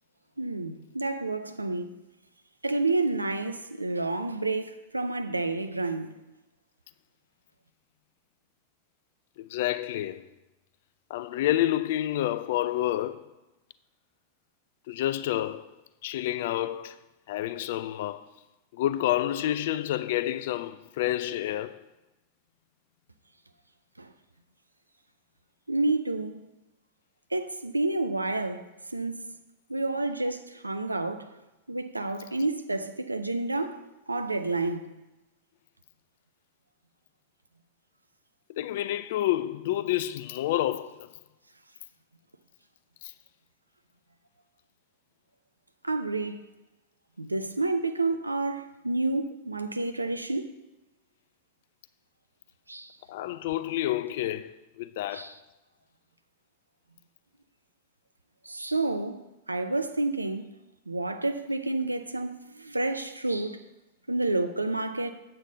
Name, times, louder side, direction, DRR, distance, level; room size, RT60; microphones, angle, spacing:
voice 1, 0.4-2.0 2.6-6.2 24.0-24.1 25.7-26.5 27.3-29.2 29.7-31.3 31.7-33.8 34.1-34.8 45.8-46.5 47.2-50.5 52.7-53.0 55.1-55.3 58.4-60.5 60.9-63.6 64.1-65.1, right 2 dB, 85° right, 0.5 m, -29 dB
voice 2, 9.4-10.3 11.1-13.3 14.9-15.7 16.0-17.0 17.3-18.3 18.7-21.8 38.5-41.1 43.0-43.1 53.1-55.4, left 13 dB, 55° left, 0.4 m, -29 dB
8.0 x 7.7 x 3.9 m
figure-of-eight pair, 90°, 0 cm